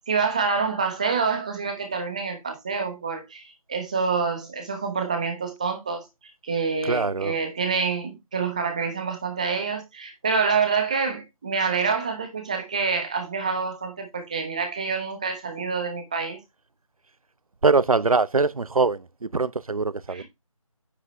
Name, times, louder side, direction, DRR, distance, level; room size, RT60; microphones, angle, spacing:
voice 1, 0.1-6.1 6.4-16.4 20.1-20.2, right 5 dB, 10° right, 1.0 m, -27 dB
voice 2, 6.8-7.3 17.6-19.1 19.3-20.2, right 4 dB, 75° right, 0.8 m, -22 dB
9.7 x 6.0 x 3.1 m
figure-of-eight pair, 170°, 18 cm